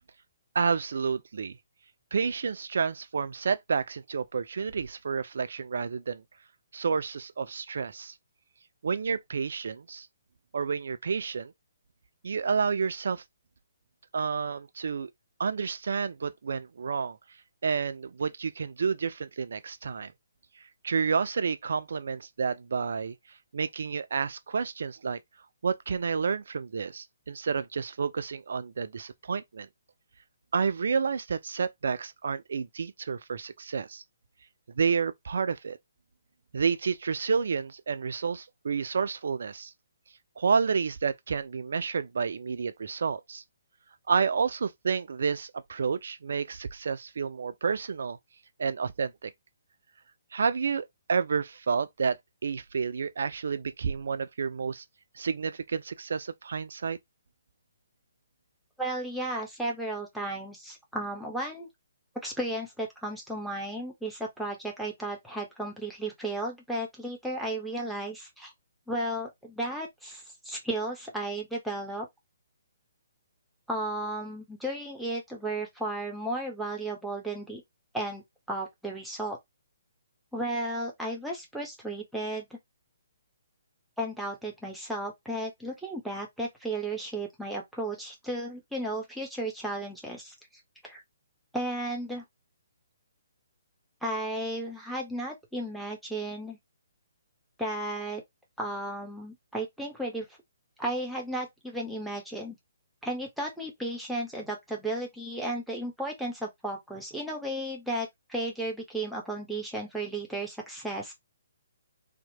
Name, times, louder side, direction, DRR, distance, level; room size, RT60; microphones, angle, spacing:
voice 1, 0.5-1.6 2.1-6.2 6.7-8.1 8.8-10.1 10.5-11.5 12.2-13.2 14.1-15.1 15.4-17.2 17.6-20.1 20.6-23.2 23.5-25.2 25.6-29.7 30.5-34.0 34.7-35.8 36.5-39.7 40.4-43.4 44.1-48.2 48.6-49.3 50.3-52.2 52.4-54.8 55.1-57.0, right 5 dB, 55° right, 0.3 m, -30 dB
voice 2, 58.8-61.7 62.2-68.5 68.9-72.1 73.7-77.6 77.9-79.4 80.3-82.6 84.0-90.3 90.8-91.0 91.5-92.2 94.0-96.6 97.6-98.2 98.6-100.3 100.8-102.6 103.0-111.1, right 1 dB, ahead, 0.7 m, -34 dB
2.8 x 2.0 x 2.6 m
figure-of-eight pair, 130°, 0 cm